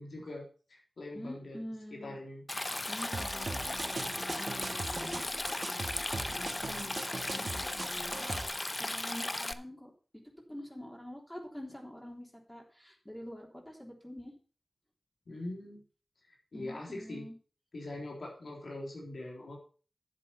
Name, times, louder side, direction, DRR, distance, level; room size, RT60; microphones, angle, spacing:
voice 1, 0.0-1.6 1.9-2.4 15.3-15.8 16.3-17.3 17.7-19.6, left 2 dB, 85° left, -1 dB, 3.7 m, -42 dB
voice 2, 1.1-2.2 2.9-5.2 5.7-8.3 8.8-9.9 10.5-14.3 16.5-17.3, equal, 10° left, 0 dB, 3.4 m, -46 dB
Stream, 2.5-9.5, left 2 dB, 30° left, 0.7 m, -36 dB
sound 1, 3.1-8.5, right 3 dB, 55° right, 1.8 m, -40 dB
10.5 x 7.6 x 5.7 m, 0.39 s
wide cardioid pair, 70°, 0 cm